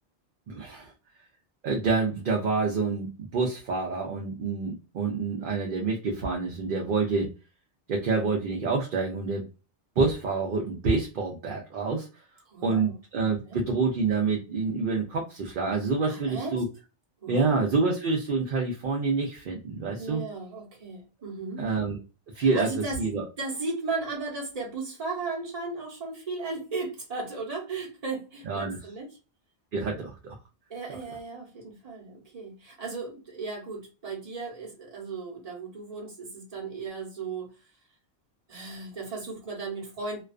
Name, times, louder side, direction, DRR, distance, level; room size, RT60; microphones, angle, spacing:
voice 1, 0.5-0.9 1.6-7.3 7.9-9.5 10.0-12.1 12.6-16.6 17.3-20.2 21.6-22.0 22.3-23.2 28.5-28.8 29.7-30.4, right 4 dB, 60° right, 0 dB, 0.6 m, -27 dB
voice 2, 12.5-12.9 13.5-13.6 16.0-16.6 17.2-17.6 20.0-21.7 22.3-23.0 23.4-29.2 30.7-37.5 38.5-40.2, right 3 dB, 35° right, -1 dB, 0.9 m, -36 dB
2.3 x 2.3 x 2.3 m, 0.31 s
omnidirectional pair, 1.2 m